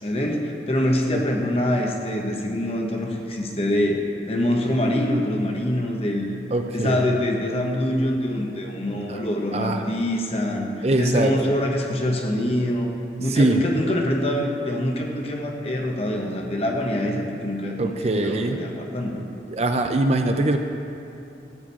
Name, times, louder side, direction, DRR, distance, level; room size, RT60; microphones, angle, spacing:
voice 1, 0.0-4.0 4.3-6.3 6.7-10.7 11.0-12.9 13.2-19.3, left 1 dB, 35° left, 1 dB, 1.2 m, -25 dB
voice 2, 6.5-7.1 9.1-9.2 9.5-9.8 10.8-11.5 13.3-13.6 17.8-18.6 19.5-20.6, right 2 dB, 35° right, 5 dB, 0.5 m, -22 dB
14.5 x 5.0 x 8.6 m, 2.7 s
head